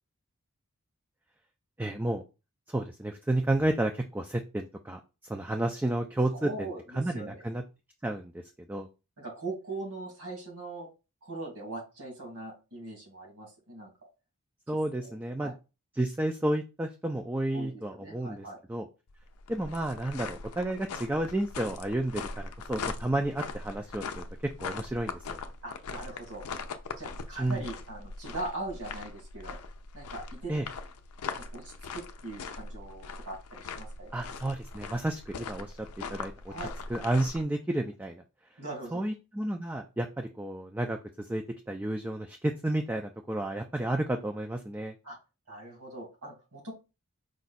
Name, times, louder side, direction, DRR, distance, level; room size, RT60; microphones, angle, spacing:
voice 1, 1.8-2.2 2.7-5.0 5.3-6.5 7.0-7.6 8.0-8.4 8.7-8.9 14.7-15.5 16.0-18.8 19.5-25.4 27.4-27.6 30.5-30.7 34.1-35.8 36.1-36.5 36.9-38.2 38.9-44.9, right 1 dB, 10° right, 4 dB, 0.3 m, -31 dB
voice 2, 6.3-7.4 9.2-10.9 11.2-13.9 14.7-15.5 17.5-18.6 25.6-26.4 27.0-29.6 29.9-30.5 31.3-34.1 36.5-36.7 38.6-39.0 45.0-45.2 45.5-46.7, right 2 dB, 80° right, -2 dB, 2.3 m, -41 dB
sound 1, 19.1-37.4, left 4 dB, 90° left, 0.5 m, -41 dB
4.9 x 2.3 x 4.1 m, 0.29 s
head